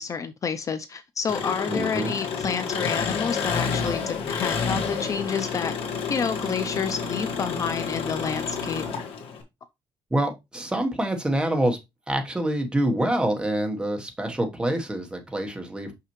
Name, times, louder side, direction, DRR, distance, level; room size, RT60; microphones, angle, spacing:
voice 1, 0.0-5.7 6.1-8.8, left 6 dB, 35° left, 0.4 m, -29 dB
Engine, 1.3-9.4, left 5 dB, 70° left, 1.6 m, -29 dB
voice 2, 1.7-2.1 10.1-11.8 12.1-15.9, right 1 dB, 10° right, 1.1 m, -26 dB
5.8 x 5.6 x 3.0 m
cardioid pair, 165°, 10 cm